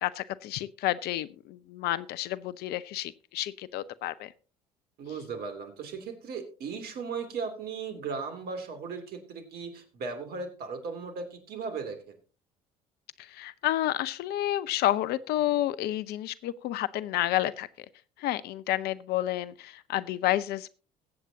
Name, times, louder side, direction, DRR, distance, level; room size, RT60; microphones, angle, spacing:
voice 1, 0.0-4.3 13.3-17.9 18.2-20.7, left 14 dB, 60° left, 17 dB, 0.7 m, -30 dB
voice 2, 5.0-12.1, right 5 dB, 60° right, 7 dB, 2.8 m, -37 dB
21.5 x 8.2 x 2.8 m, 0.34 s
hypercardioid pair, 60°, 19 cm